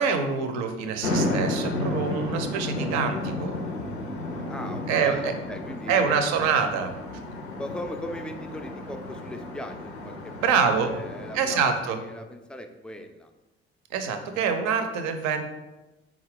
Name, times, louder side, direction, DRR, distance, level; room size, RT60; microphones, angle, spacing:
voice 1, 0.0-3.6 4.9-5.3 5.9-6.9 10.4-10.9 11.3-12.0 13.9-15.5, right 6 dB, 60° right, 7 dB, 0.6 m, -25 dB
sound 1, 1.0-11.7, left 2 dB, 90° left, 0.5 m, -32 dB
voice 2, 4.5-6.7 7.6-10.5 10.8-13.3, left 1 dB, 5° left, 5 dB, 0.3 m, -39 dB
4.0 x 2.4 x 3.7 m, 1.1 s
figure-of-eight pair, 50°, 32 cm